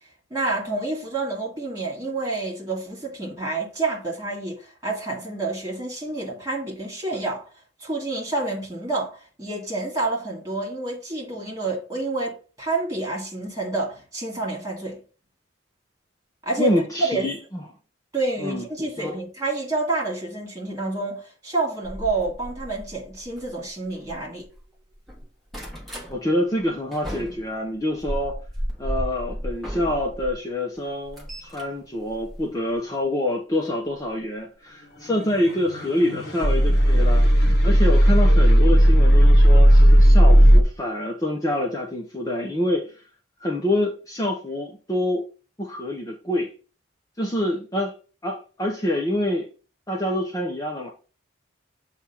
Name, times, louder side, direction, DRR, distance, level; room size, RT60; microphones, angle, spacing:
voice 1, 0.3-7.4 7.8-15.0 16.4-16.7 17.0-17.3 18.1-24.5, right 3 dB, 20° right, 2.4 m, -28 dB
voice 2, 16.6-17.6 18.4-19.1 26.1-28.4 28.8-43.1 43.4-45.2 45.6-46.5 47.2-47.9 48.2-49.5 49.9-50.9, left 1 dB, 20° left, 0.7 m, -26 dB
sound 1, 21.8-24.6 24.9-26.1 26.6-30.3 30.8-32.9 34.0-34.2 34.7-34.8 35.0-35.1, equal, ahead, 1.3 m, -35 dB
sound 2, 35.3-40.6, equal, 55° left, 1.0 m, -14 dB
7.2 x 2.4 x 5.6 m
head